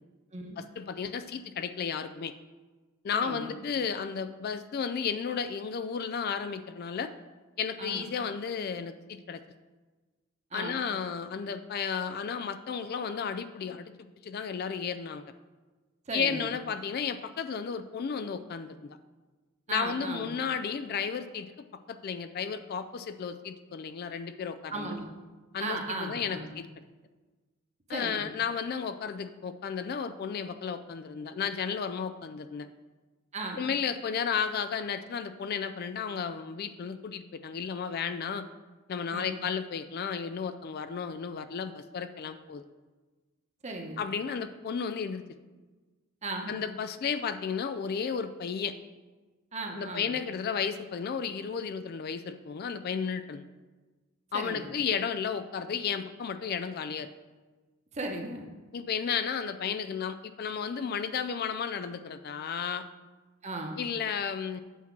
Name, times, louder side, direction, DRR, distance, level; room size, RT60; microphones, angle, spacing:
voice 1, 0.8-2.3 3.0-7.1 7.6-9.4 10.5-13.9 14.2-15.2 16.1-19.0 19.7-21.5 21.9-24.9 25.5-26.7 27.9-32.7 33.6-38.5 38.9-42.6 44.0-45.2 46.5-48.7 49.8-53.4 54.3-57.1 58.7-62.8 63.8-64.6, left 6 dB, 45° left, 11 dB, 0.3 m, -33 dB
voice 2, 3.1-3.5 7.8-8.1 10.5-10.8 16.1-16.4 19.7-20.3 24.7-25.1 25.6-26.5 27.9-28.2 33.3-33.7 39.1-39.4 43.6-44.0 46.2-46.5 49.5-50.1 54.3-54.7 57.9-58.4 63.4-63.8, right 2 dB, 30° right, 2 dB, 1.0 m, -36 dB
8.2 x 4.4 x 6.0 m, 1.3 s
head